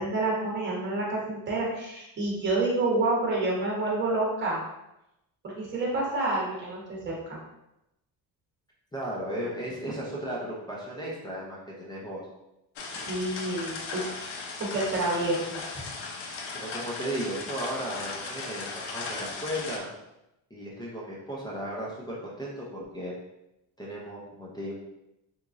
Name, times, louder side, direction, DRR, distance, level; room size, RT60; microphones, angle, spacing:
voice 1, 0.0-4.6 5.4-7.4 12.9-15.6, right 2 dB, 25° right, -3 dB, 0.9 m, -29 dB
voice 2, 8.9-12.3 16.3-19.9 20.5-23.1 23.8-24.7, right 1 dB, 10° left, -6 dB, 0.4 m, -35 dB
sound 1, 12.8-19.8, left 4 dB, 70° left, 0.7 m, -37 dB
3.6 x 3.0 x 2.4 m, 0.88 s
cardioid pair, 155°, 42 cm